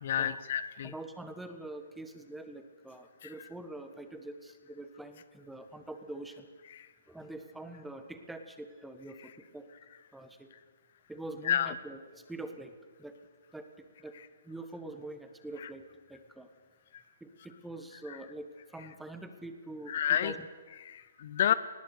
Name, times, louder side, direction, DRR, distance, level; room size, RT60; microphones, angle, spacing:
voice 1, 0.0-0.9 3.2-3.3 6.7-6.9 11.5-11.7 19.9-20.3 20.8-21.5, left 10 dB, 50° left, 16 dB, 0.7 m, -29 dB
voice 2, 0.8-6.5 7.1-9.7 10.1-10.5 11.1-13.2 13.5-14.2 14.4-16.5 17.2-20.5 21.5-21.6, right 2 dB, 5° right, 7 dB, 1.4 m, -45 dB
19.5 x 17.0 x 8.3 m, 1.4 s
hypercardioid pair, 160°, 0 cm